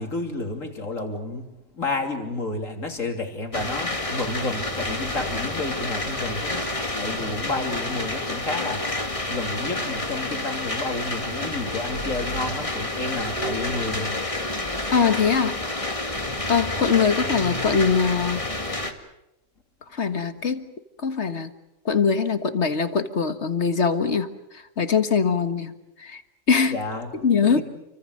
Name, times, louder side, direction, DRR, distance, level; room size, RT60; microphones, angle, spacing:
voice 1, 0.0-1.5 1.7-14.2 26.7-27.1 27.4-27.6, left 2 dB, 75° left, 3 dB, 3.7 m, -31 dB
sound 1, 3.5-18.9, left 2 dB, 25° left, 2.1 m, -29 dB
voice 2, 14.9-15.6 16.5-18.4 19.9-20.7 21.0-21.5 21.9-24.3 24.5-26.2 26.5-26.8 27.2-27.6, left 5 dB, 60° left, 9 dB, 1.8 m, -22 dB
29.5 x 24.0 x 6.5 m, 0.90 s
omnidirectional pair, 1.4 m